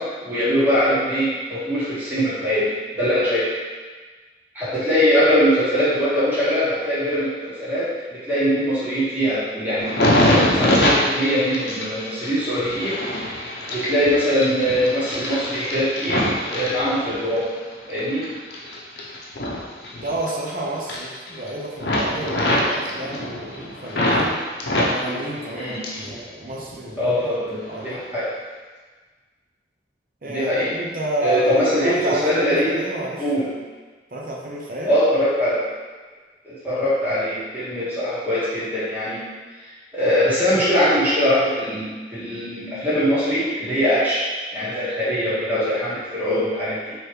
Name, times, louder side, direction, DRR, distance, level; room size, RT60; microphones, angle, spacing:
voice 1, 0.0-3.4 4.5-7.9 8.1-17.5 17.9-18.2 25.5-25.8 27.0-28.3 30.3-30.7 31.2-31.9 32.2-32.7 33.2-33.5 34.8-35.6 36.4-39.2 39.9-44.2 44.5-46.9, equal, 10° right, -12 dB, 1.4 m, -22 dB
sound 1, 9.8-17.4 17.9-20.5 20.8-21.5 21.8-24.3 24.6-26.2 26.5-27.2 27.7-27.9, left 1 dB, 70° left, 0.7 m, -24 dB
voice 2, 20.0-24.5 24.8-27.4 27.7-28.0 30.2-33.3 34.1-34.9, right 1 dB, 50° right, -3 dB, 0.6 m, -30 dB
4.6 x 3.2 x 3.1 m, 1.4 s
head